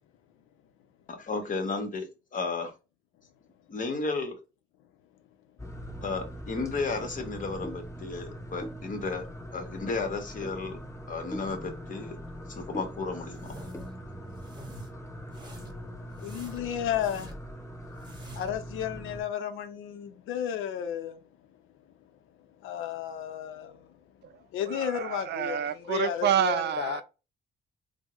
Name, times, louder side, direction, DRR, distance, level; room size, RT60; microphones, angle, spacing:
voice 1, 1.1-2.7 3.7-4.4 6.0-9.3 9.5-10.8 11.1-12.2 12.5-13.6, left 3 dB, 40° left, 1.0 m, -33 dB
sound 1, 5.6-19.2, equal, 15° left, 0.8 m, -42 dB
sound 2, 13.4-13.9 14.3-14.9 15.3-15.8 16.2-17.5 17.9-18.6, right 2 dB, 20° right, 1.0 m, -47 dB
voice 2, 16.2-17.4 18.3-21.2 22.6-23.9 24.5-27.0, left 9 dB, 85° left, 0.5 m, -33 dB
voice 3, 24.2-27.0, right 10 dB, 60° right, 0.4 m, -29 dB
3.5 x 2.1 x 3.0 m
cardioid pair, 90°, 20 cm